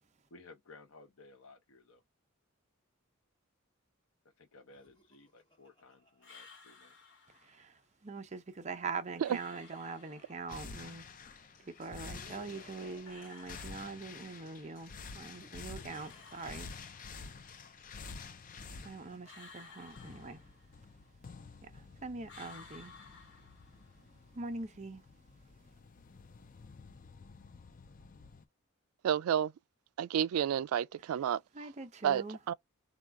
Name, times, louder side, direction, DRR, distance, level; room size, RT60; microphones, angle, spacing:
voice 1, 0.3-2.0 4.4-7.1, left 3 dB, 80° left, 0.8 m, -57 dB
Laughter, 4.6-7.4 8.5-11.1 11.7-14.4 15.1-17.5 18.4-20.5, equal, 20° left, 1.2 m, -63 dB
sound 1, 6.2-7.7 9.2-10.7 13.0-14.6 15.9-17.4 19.2-21.0 22.3-24.1, left 4 dB, 60° left, 1.2 m, -56 dB
voice 2, 7.4-11.0 11.7-16.7 18.8-20.4 21.6-22.9 24.3-25.0 31.5-32.4, right 4 dB, 35° right, 0.6 m, -43 dB
sound 2, 10.5-28.4, left 4 dB, 40° left, 0.4 m, -50 dB
voice 3, 29.0-29.5 30.0-31.4 32.0-32.5, right 9 dB, 90° right, 0.3 m, -30 dB
3.6 x 2.3 x 4.5 m
head